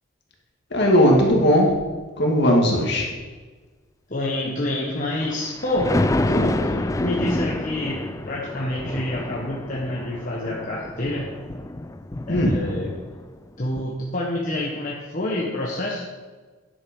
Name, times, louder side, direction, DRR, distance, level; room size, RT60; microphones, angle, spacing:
voice 1, 0.7-1.7 2.2-3.1 12.3-12.6, equal, 55° left, -1 dB, 2.3 m, -17 dB
voice 2, 4.1-6.0 6.3-8.0 8.3-11.3 12.3-12.9 13.6-16.0, left 1 dB, 40° left, -3 dB, 1.3 m, -27 dB
Thunder, 5.0-13.4 13.8-13.9, left 1 dB, 15° left, 0.3 m, -28 dB
10.5 x 8.1 x 5.4 m, 1.4 s
head